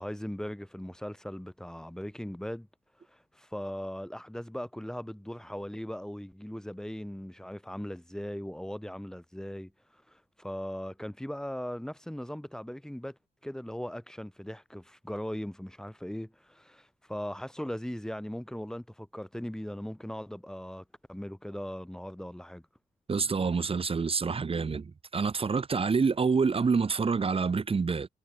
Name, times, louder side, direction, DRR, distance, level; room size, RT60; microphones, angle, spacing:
voice 1, 0.0-2.7 3.1-22.6, equal, 5° left, 5.9 m, -39 dB
voice 2, 23.1-28.1, right 5 dB, 40° right, 3.3 m, -27 dB
cardioid pair, 65°, 15 cm